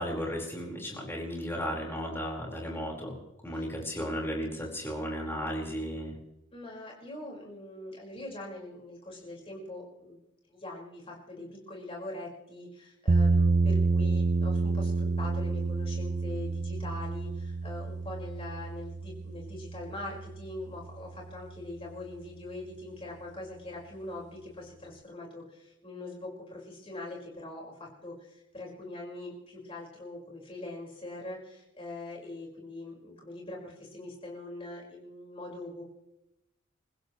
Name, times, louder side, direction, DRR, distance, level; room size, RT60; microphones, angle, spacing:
voice 1, 0.0-3.2 3.4-6.2, equal, 10° left, -2 dB, 4.8 m, -34 dB
voice 2, 6.5-10.2 10.5-35.8, left 2 dB, 30° left, -3 dB, 5.3 m, -42 dB
sound 1, 13.1-21.2, right 3 dB, 35° right, 0.5 m, -29 dB
28.5 x 15.5 x 3.2 m, 0.91 s
head